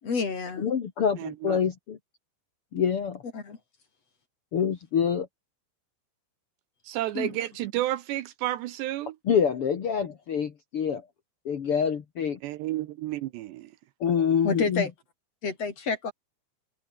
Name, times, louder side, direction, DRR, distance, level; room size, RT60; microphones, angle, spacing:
voice 1, 0.0-0.7 3.3-3.6 7.1-7.4 14.4-14.9 15.4-16.1, left 4 dB, 35° left, 4.1 m, -29 dB
voice 2, 0.6-2.0 2.7-3.2 4.5-5.3 9.2-11.0 11.4-12.4 14.0-14.8, left 7 dB, 85° left, 1.2 m, -26 dB
voice 3, 1.2-1.6 6.8-9.2 12.4-13.7, right 15 dB, 75° right, 2.8 m, -31 dB
omnidirectional pair, 5.5 m